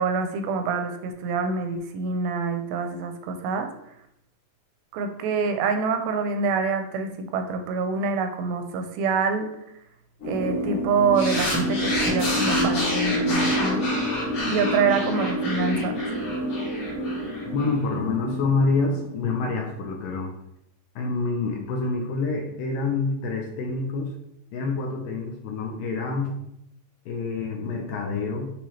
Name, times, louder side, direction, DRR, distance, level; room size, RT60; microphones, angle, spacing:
voice 1, 0.0-3.7 4.9-9.5 10.2-13.9 14.5-16.0, right 5 dB, 85° right, 7 dB, 2.4 m, -26 dB
sound 1, 10.2-19.6, equal, 30° left, 1.3 m, -28 dB
sound 2, 11.2-17.7, left 1 dB, 55° left, 2.3 m, -29 dB
voice 2, 17.5-20.3 21.0-24.1 24.5-26.3 27.1-28.5, left 3 dB, 80° left, 2 dB, 2.0 m, -27 dB
6.1 x 2.9 x 3.0 m, 0.80 s
omnidirectional pair, 4.2 m